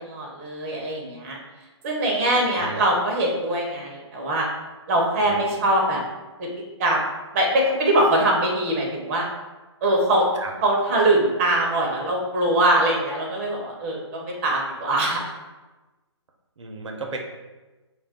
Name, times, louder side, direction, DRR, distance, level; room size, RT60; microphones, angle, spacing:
voice 1, 0.0-1.4 1.8-4.5 4.9-6.0 6.4-6.5 6.8-7.0 7.3-9.3 9.8-10.3 10.6-15.3, right 1 dB, 25° right, -1 dB, 0.5 m, -22 dB
voice 2, 5.2-5.7 10.4-10.5 16.6-17.2, right 3 dB, 75° right, 2 dB, 0.5 m, -35 dB
2.2 x 2.2 x 3.5 m, 1.2 s
hypercardioid pair, 145°, 15 cm